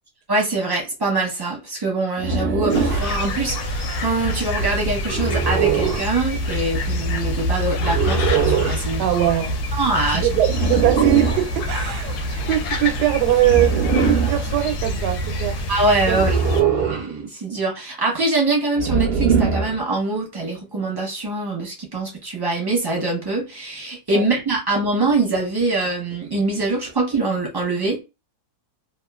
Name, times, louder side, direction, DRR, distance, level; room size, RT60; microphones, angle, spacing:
voice 1, 0.3-9.0 9.8-10.3 15.7-16.4 16.8-28.0, right 2 dB, 25° right, 0.5 m, -23 dB
sound 1, 2.2-3.1 5.1-6.1 7.8-8.8 10.5-11.5 13.4-14.4 16.1-17.1 18.8-19.8, right 5 dB, 65° right, 0.6 m, -21 dB
sound 2, 2.7-16.6, equal, 80° left, 1.1 m, -26 dB
voice 2, 9.0-9.5 10.1-15.6 16.1-16.2 24.1-24.2, right 13 dB, 85° right, 1.2 m, -21 dB
2.8 x 2.3 x 2.3 m
omnidirectional pair, 1.7 m